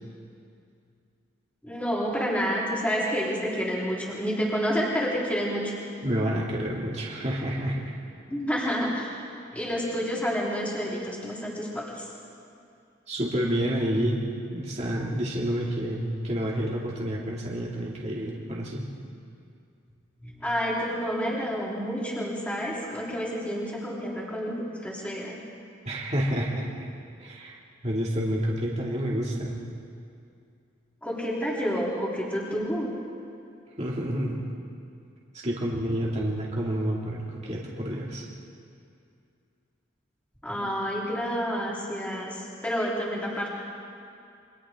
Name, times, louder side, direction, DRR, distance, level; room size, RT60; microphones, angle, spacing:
voice 1, 1.6-5.7 8.3-9.2 9.5-12.1 20.2-25.4 31.0-32.9 40.4-43.5, equal, 5° left, -6 dB, 3.7 m, -29 dB
voice 2, 6.0-7.9 13.1-14.2 14.5-18.9 25.8-26.9 27.2-27.6 27.8-29.6 33.8-34.4 35.3-38.2, equal, 35° right, -4 dB, 2.4 m, -29 dB
29.0 x 25.0 x 3.8 m, 2.5 s
head